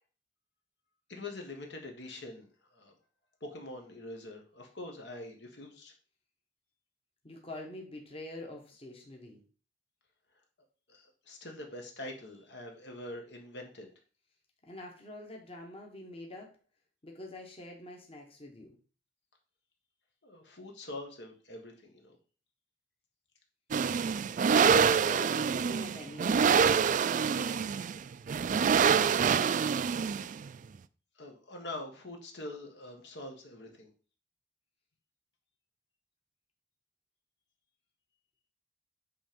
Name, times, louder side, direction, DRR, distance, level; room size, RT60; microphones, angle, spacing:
voice 1, 1.1-2.5 2.7-2.9 3.4-5.9 10.9-13.9 20.2-22.2 31.2-33.9, left 2 dB, 70° left, 2 dB, 1.6 m, -44 dB
voice 2, 7.2-9.4 14.7-16.6 17.0-18.7 24.6-26.7, left 2 dB, 30° left, 0 dB, 1.3 m, -46 dB
sound 1, 23.7-30.5, right 6 dB, 45° right, 0.3 m, -26 dB
8.6 x 3.4 x 5.2 m, 0.38 s
head